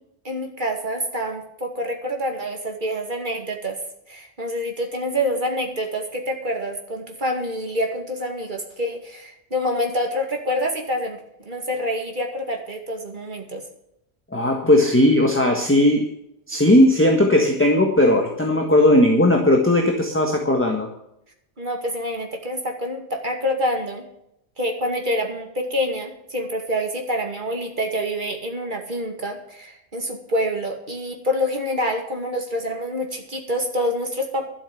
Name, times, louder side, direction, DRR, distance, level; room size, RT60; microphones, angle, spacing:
voice 1, 0.2-3.8 4.1-13.6 21.6-24.1 24.6-34.5, equal, 45° right, 3 dB, 2.5 m, -27 dB
voice 2, 14.3-16.1 16.5-20.9, left 1 dB, 10° left, 1 dB, 1.5 m, -17 dB
12.5 x 7.4 x 8.5 m, 0.80 s
omnidirectional pair, 1.1 m